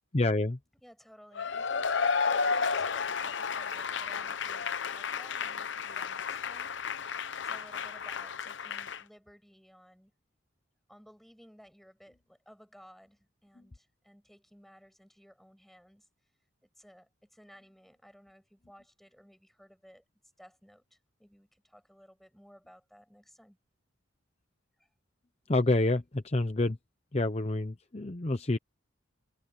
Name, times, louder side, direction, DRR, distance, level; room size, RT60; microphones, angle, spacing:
voice 1, 0.1-0.6 25.5-26.8 27.1-28.6, left 2 dB, 30° left, 0.7 m, -28 dB
voice 2, 0.8-10.1 10.9-16.1 16.6-20.0 20.4-23.6 24.8-24.9, equal, ahead, 6.2 m, -57 dB
Cheering / Applause / Crowd, 1.4-9.0, left 5 dB, 60° left, 0.7 m, -32 dB
head